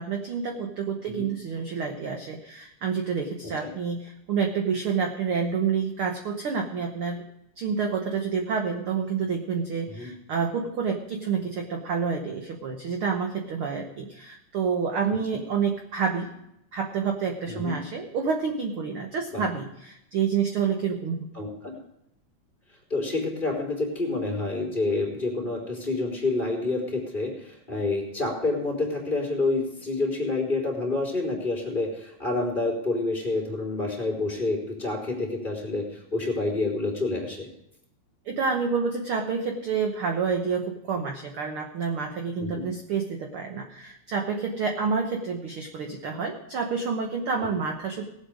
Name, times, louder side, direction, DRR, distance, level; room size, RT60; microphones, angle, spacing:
voice 1, 0.0-7.2 7.6-16.3 16.7-21.3 38.2-48.0, right 5 dB, 60° right, 3 dB, 1.5 m, -28 dB
voice 2, 21.3-21.8 22.9-37.5 42.4-42.7, left 2 dB, 15° left, -2 dB, 3.2 m, -28 dB
18.5 x 8.0 x 5.0 m, 0.81 s
omnidirectional pair, 3.7 m